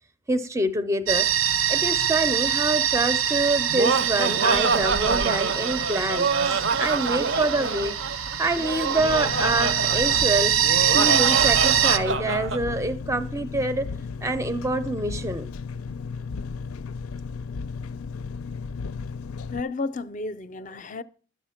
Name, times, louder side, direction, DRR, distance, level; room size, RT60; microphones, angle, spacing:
voice 1, 0.3-1.3 1.7-7.9 8.4-10.6 10.9-13.8 14.2-15.5, right 2 dB, 15° right, 0.5 m, -26 dB
sound 1, 1.1-12.0, right 9 dB, 80° right, 0.9 m, -24 dB
Laughter, 3.5-12.6, right 4 dB, 60° right, 0.6 m, -26 dB
Engine, 9.0-19.6, left 5 dB, 90° left, 0.4 m, -34 dB
voice 2, 19.5-21.0, left 3 dB, 35° left, 0.5 m, -32 dB
12.0 x 8.3 x 5.7 m
head